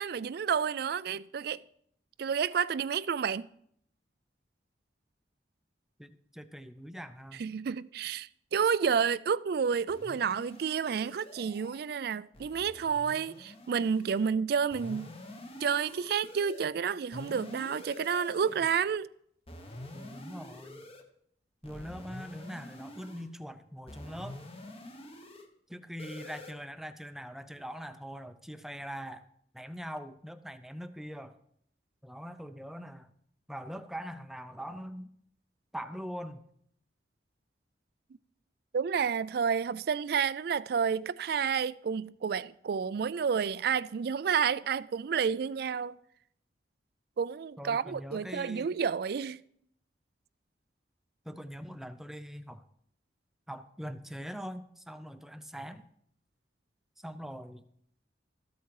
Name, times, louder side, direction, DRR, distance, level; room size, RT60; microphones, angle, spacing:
voice 1, 0.0-1.6 2.2-3.5 7.4-15.1 15.6-19.1 38.7-46.0 47.2-49.4, right 6 dB, 60° right, 0.3 m, -30 dB
voice 2, 6.0-7.5 19.9-20.9 21.6-24.4 25.7-29.2 29.5-31.4 32.0-33.1 33.5-35.1 35.7-36.4 47.6-48.7 51.3-52.7 53.5-55.9 57.0-57.6, equal, ahead, 0.5 m, -42 dB
sound 1, 9.9-11.8 12.3-14.3 14.7-16.7 17.1-18.7 19.5-21.0 21.6-23.3 23.9-25.5 26.0-26.5, left 1 dB, 35° left, 1.2 m, -47 dB
13.5 x 8.3 x 4.7 m
head